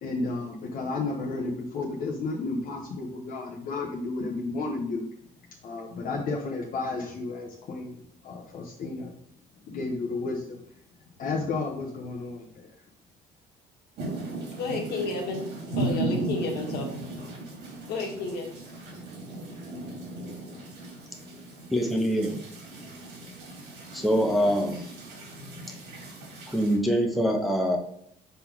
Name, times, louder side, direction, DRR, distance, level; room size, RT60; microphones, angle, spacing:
voice 1, 0.0-5.1 5.6-9.1 9.6-10.6 11.2-12.7, left 3 dB, 55° left, 1.0 m, -32 dB
sound 1, 14.0-26.8, right 2 dB, 85° right, 2.5 m, -36 dB
voice 2, 14.5-15.5 15.8-16.9 17.9-18.6, left 3 dB, 70° left, 1.7 m, -31 dB
voice 3, 21.7-22.4 23.9-24.9 26.5-27.8, equal, ahead, 0.9 m, -24 dB
5.4 x 4.0 x 4.5 m
cardioid pair, 110°, 17 cm